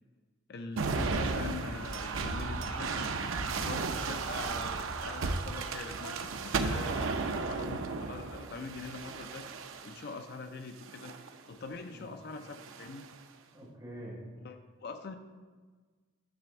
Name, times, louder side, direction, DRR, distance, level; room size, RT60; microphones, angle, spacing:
voice 1, 0.5-3.1 3.6-9.4 9.8-11.1 11.5-13.1 14.4-15.1, left 4 dB, 50° left, 7 dB, 0.5 m, -43 dB
sound 1, 0.8-10.1 10.8-11.4 12.5-13.1, right 4 dB, 70° right, 0.5 m, -34 dB
voice 2, 13.5-14.2, right 1 dB, 20° right, -6 dB, 2.1 m, -45 dB
10.0 x 3.4 x 6.9 m, 1.4 s
head